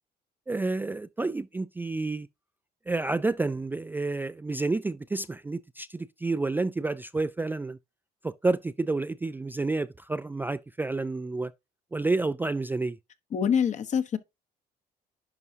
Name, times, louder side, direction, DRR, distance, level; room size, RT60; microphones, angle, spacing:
voice 1, 0.5-2.3 2.9-7.8 8.2-11.5 11.9-13.0, right 3 dB, 10° right, 0.3 m, -29 dB
voice 2, 13.3-14.2, left 7 dB, 45° left, 1.0 m, -25 dB
11.0 x 4.8 x 2.7 m
cardioid pair, 110°, 17 cm